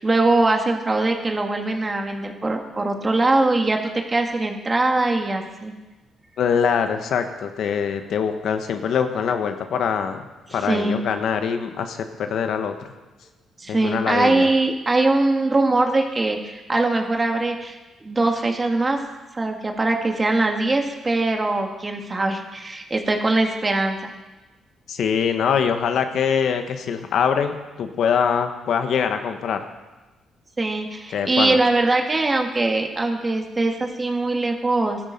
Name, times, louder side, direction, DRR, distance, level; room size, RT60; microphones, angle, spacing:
voice 1, 0.0-5.7 10.5-11.0 13.6-17.8 18.0-19.0 19.3-24.1 30.6-35.0, right 2 dB, 25° right, 3 dB, 2.0 m, -22 dB
voice 2, 6.4-12.7 13.7-14.5 24.9-29.6 31.1-31.6, left 7 dB, 70° left, 7 dB, 1.2 m, -23 dB
15.5 x 12.5 x 5.3 m, 1.1 s
cardioid pair, 90°, 0 cm